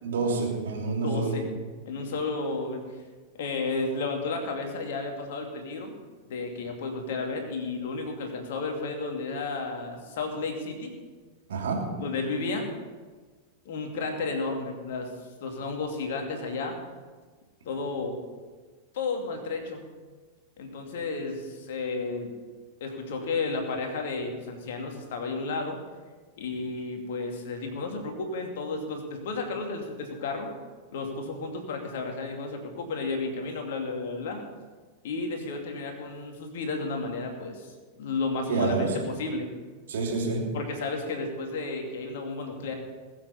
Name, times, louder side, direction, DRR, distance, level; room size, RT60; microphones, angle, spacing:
voice 1, 0.0-1.4 11.5-11.9 38.5-39.0 39.9-40.6, right 4 dB, 60° right, 0 dB, 3.0 m, -28 dB
voice 2, 1.0-1.5 1.9-2.8 3.4-6.0 6.3-10.9 12.0-12.7 13.6-15.1 15.4-16.8 17.6-18.2 18.9-19.8 20.6-22.3 22.8-25.8 26.4-30.5 30.9-34.5 35.0-37.7 38.0-39.5 40.5-42.7, left 3 dB, 55° left, 3 dB, 2.5 m, -32 dB
20.5 x 7.8 x 5.4 m, 1.4 s
figure-of-eight pair, 90°, 0 cm